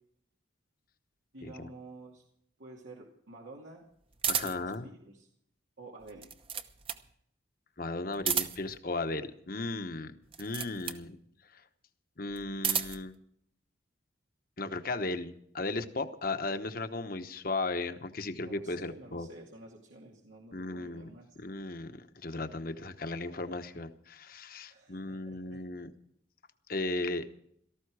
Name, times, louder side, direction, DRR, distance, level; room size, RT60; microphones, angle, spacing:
voice 1, 1.3-2.2 2.6-3.8 4.4-5.3 5.8-6.3 18.4-21.4 24.6-25.6, right 2 dB, 90° right, -2 dB, 2.5 m, -50 dB
sound 1, 4.2-4.7 6.0-7.1 8.1-8.8 10.3-11.1 12.3-13.1, right 7 dB, 30° right, 0.9 m, -32 dB
voice 2, 4.3-4.9 7.8-10.1 10.4-11.2 12.2-13.1 14.6-19.3 20.5-21.1 21.4-25.9 26.7-27.2, left 2 dB, 50° left, 8 dB, 1.1 m, -36 dB
18.0 x 14.5 x 4.8 m, 0.70 s
head